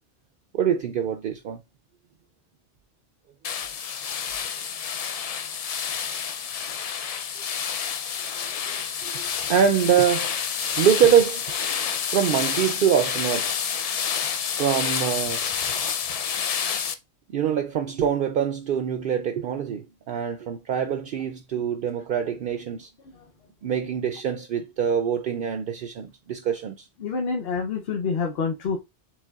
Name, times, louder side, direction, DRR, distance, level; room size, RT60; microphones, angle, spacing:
voice 1, 0.5-1.6 8.4-10.3 10.8-13.6 14.5-15.4 17.3-22.9 23.6-26.9, right 8 dB, 65° right, 0.7 m, -24 dB
sound 1, 3.4-16.9, left 7 dB, 50° left, 0.4 m, -29 dB
voice 2, 27.0-28.8, left 5 dB, 75° left, 1.0 m, -28 dB
6.4 x 3.5 x 2.3 m
omnidirectional pair, 1.0 m